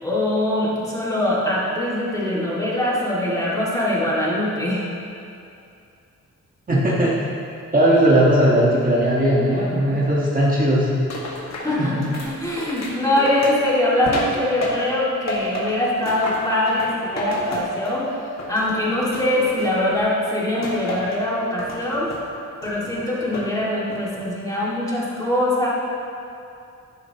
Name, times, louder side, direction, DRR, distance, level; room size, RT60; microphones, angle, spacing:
voice 1, 0.0-4.9 11.6-11.9 12.2-18.2 18.5-22.1 22.6-25.7, left 1 dB, 10° left, -7 dB, 2.2 m, -22 dB
voice 2, 6.7-7.1 7.7-10.9 11.8-11.9, right 1 dB, 25° right, -6 dB, 1.5 m, -18 dB
sound 1, 11.1-15.0 15.3-18.1 18.4-20.0 20.6-21.2 21.6-22.2 22.6-23.5 23.9-24.3, left 1 dB, 60° left, 1.8 m, -31 dB
11.5 x 10.5 x 3.0 m, 2.6 s
wide cardioid pair, 140°, 31 cm